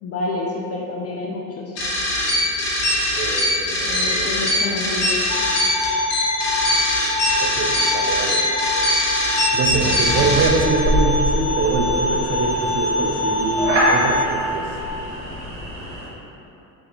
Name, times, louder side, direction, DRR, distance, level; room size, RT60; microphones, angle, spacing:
voice 1, 0.0-1.8 3.8-5.3, left 2 dB, 35° left, -3 dB, 0.4 m, -28 dB
sound 1, 1.8-10.5, left 1 dB, 60° left, 1.4 m, -21 dB
voice 2, 3.2-4.3 7.4-8.5 9.5-14.7, right 4 dB, 30° right, 2 dB, 0.4 m, -24 dB
sound 2, 5.3-14.3, left 2 dB, 85° left, 0.6 m, -24 dB
sound 3, 10.0-16.1, equal, 80° right, 1.1 m, -25 dB
3.7 x 3.3 x 2.9 m, 2.9 s
hypercardioid pair, 60°, 50 cm